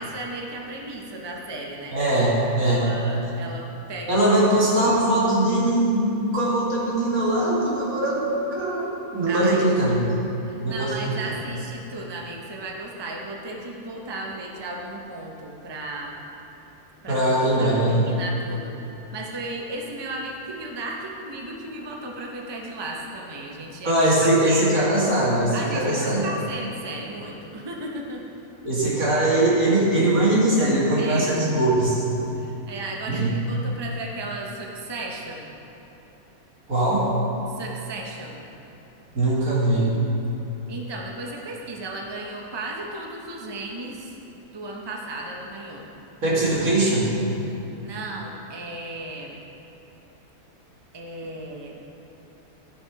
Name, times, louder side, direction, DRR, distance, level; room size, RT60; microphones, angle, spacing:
voice 1, 0.0-2.0 2.6-4.2 9.3-9.7 10.4-16.2 17.0-17.2 17.6-18.7 19.1-24.8 25.5-28.2 31.0-31.3 32.3-35.5 37.5-38.4 40.7-44.2 44.5-45.9 47.8-49.4 50.9-51.7, right 2 dB, 20° right, -1 dB, 0.8 m, -35 dB
voice 2, 1.9-2.9 4.1-10.2 10.6-11.2 17.1-18.1 23.8-26.2 28.6-32.0 33.1-33.4 36.7-37.0 39.1-39.9 46.2-47.1, right 1 dB, 75° right, -7 dB, 2.7 m, -21 dB
14.5 x 5.9 x 4.7 m, 3.0 s
omnidirectional pair, 1.5 m